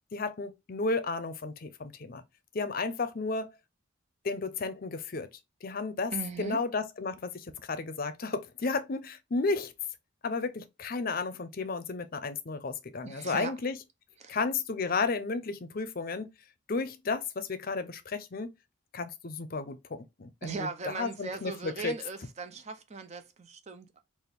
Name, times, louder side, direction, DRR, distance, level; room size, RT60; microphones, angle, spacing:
voice 1, 0.1-2.2 2.5-3.5 4.2-5.3 5.6-6.1 6.4-9.7 10.2-13.8 14.3-16.3 16.7-18.5 18.9-21.9, left 4 dB, 50° left, 0.6 m, -33 dB
voice 2, 6.1-6.6 13.0-13.5 14.2-14.4 20.4-24.0, right 4 dB, 35° right, 0.5 m, -38 dB
4.1 x 2.5 x 3.3 m
head